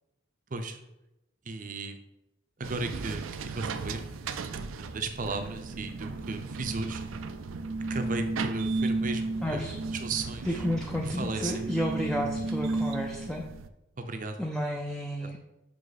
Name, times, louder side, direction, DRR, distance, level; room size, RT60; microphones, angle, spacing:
voice 1, 1.5-2.0 2.6-4.0 4.8-7.0 7.9-9.7 10.0-10.6 11.0-11.6 14.0-14.4 15.2-15.4, right 3 dB, 40° right, 7 dB, 0.6 m, -35 dB
sound 1, 2.6-13.7, right 3 dB, 85° right, 0.4 m, -34 dB
voice 2, 9.4-9.8 10.4-13.4 14.4-15.4, equal, 5° left, 0 dB, 0.5 m, -31 dB
5.9 x 5.1 x 4.1 m, 0.93 s
head